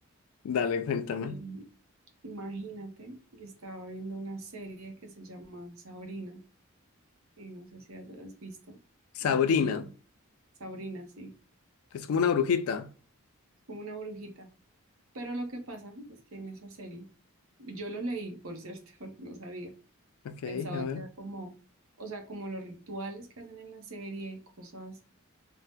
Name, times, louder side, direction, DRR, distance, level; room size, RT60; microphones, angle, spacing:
voice 1, 0.4-1.4 9.2-9.9 11.9-12.9 20.2-21.0, left 6 dB, 80° left, 0.3 m, -28 dB
voice 2, 1.2-1.6 2.2-6.4 7.4-8.8 9.2-9.9 10.6-11.3 13.7-14.5 15.1-17.1 17.6-19.7 20.4-21.5 22.0-25.0, right 2 dB, 75° right, 0.8 m, -41 dB
2.7 x 2.1 x 3.4 m
head